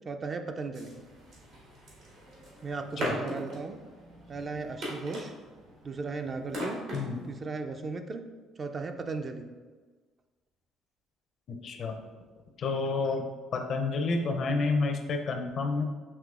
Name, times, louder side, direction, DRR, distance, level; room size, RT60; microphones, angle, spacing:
voice 1, 0.1-1.0 2.6-3.8 4.3-5.3 5.8-6.8 7.3-8.2 8.6-9.5, right 4 dB, 40° right, 6 dB, 0.4 m, -36 dB
sound 1, 0.7-7.4, equal, 75° right, 1.4 m, -40 dB
voice 2, 11.5-12.0 12.6-13.2 13.5-15.8, left 3 dB, 55° left, 5 dB, 0.5 m, -29 dB
5.5 x 2.8 x 2.4 m, 1.4 s
supercardioid pair, 80°, 0 cm